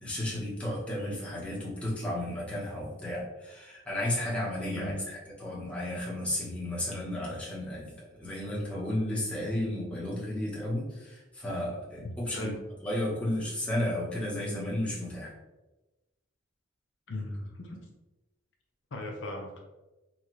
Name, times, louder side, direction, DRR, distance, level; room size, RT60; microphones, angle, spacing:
voice 1, 0.0-12.6 12.8-15.3, left 1 dB, 5° left, -6 dB, 1.0 m, -33 dB
voice 2, 4.7-5.1 12.3-12.6 17.1-17.8 18.9-19.6, left 1 dB, 65° left, 1 dB, 0.6 m, -37 dB
4.2 x 2.4 x 3.0 m, 1.1 s
head